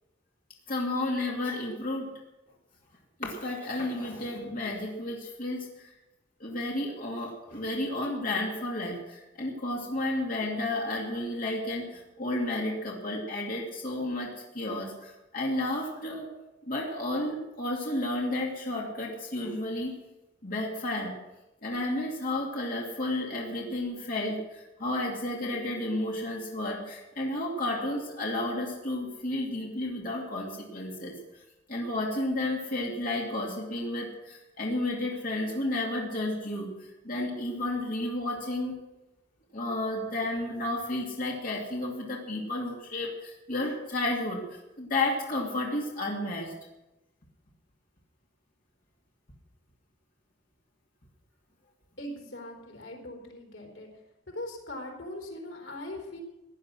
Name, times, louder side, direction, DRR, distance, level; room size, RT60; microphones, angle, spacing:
voice 1, 0.7-2.1 3.2-5.9 6.4-16.3 16.7-19.9 20.4-21.2 21.6-31.2 31.7-38.8 39.5-46.5, left 1 dB, 50° left, -2 dB, 2.6 m, -32 dB
voice 2, 52.0-53.9 54.3-56.2, left 1 dB, 85° left, 1 dB, 4.2 m, -40 dB
17.0 x 10.5 x 6.2 m, 0.98 s
head